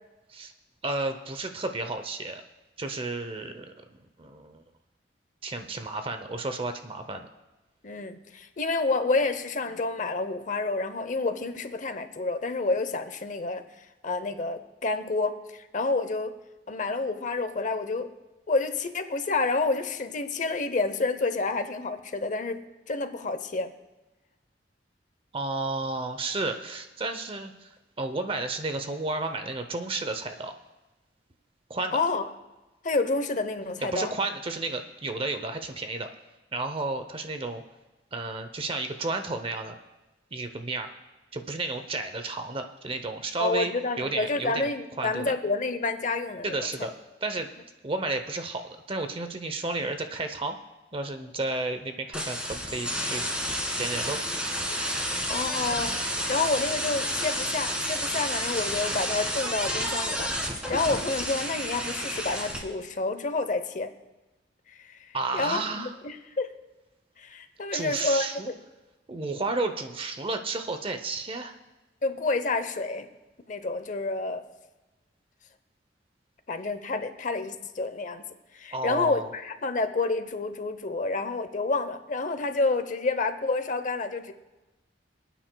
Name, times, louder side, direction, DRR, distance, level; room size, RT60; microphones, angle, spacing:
voice 1, 0.8-2.4 2.8-3.7 4.2-4.6 5.4-7.3 25.3-30.5 31.7-32.0 33.9-36.1 36.5-37.6 38.1-39.8 40.3-40.9 41.3-44.7 45.0-45.3 46.4-46.9 47.2-47.5 47.8-50.6 50.9-53.3 53.8-54.2 65.1-65.9 67.7-68.5 69.1-71.6 78.7-79.3, right 3 dB, 30° right, 7 dB, 0.7 m, -32 dB
voice 2, 7.8-16.4 16.7-18.1 18.5-23.7 31.9-32.3 32.8-34.1 43.4-46.7 55.3-56.0 56.3-60.3 60.7-63.9 64.7-66.5 67.2-68.6 72.0-73.1 73.5-74.4 76.5-78.2 78.5-84.3, left 3 dB, 45° left, 10 dB, 0.7 m, -29 dB
sound 1, 52.1-62.6, equal, 5° right, 1.8 m, -30 dB
27.0 x 9.1 x 2.2 m, 1.1 s
head